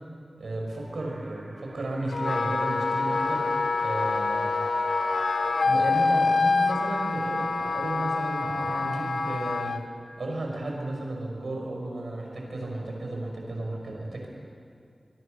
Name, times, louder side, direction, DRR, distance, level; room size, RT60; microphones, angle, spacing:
voice 1, 0.4-3.5 3.8-4.5 5.4-9.8 10.2-14.3, right 2 dB, 85° right, 0 dB, 5.9 m, -33 dB
sound 1, 0.8-9.0, right 1 dB, 35° right, 3.8 m, -45 dB
Wind instrument woodwind instrument, 2.1-9.8, left 3 dB, 85° left, 1.1 m, -26 dB
24.0 x 22.5 x 6.7 m, 2.4 s
wide cardioid pair, 85°, 0 cm